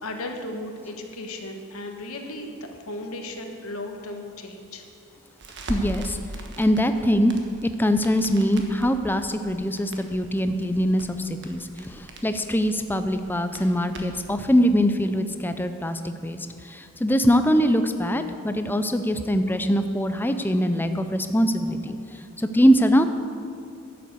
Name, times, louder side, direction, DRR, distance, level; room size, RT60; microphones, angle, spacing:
voice 1, 0.0-2.6 2.9-4.8, left 2 dB, 75° left, 4 dB, 1.3 m, -35 dB
Crackle, 5.4-14.3, right 1 dB, 55° right, 1.3 m, -40 dB
voice 2, 5.7-6.2 6.6-7.3 7.8-16.4 16.7-22.0 22.4-23.0, equal, 10° left, 8 dB, 0.5 m, -22 dB
11.5 x 7.6 x 8.0 m, 2.4 s
head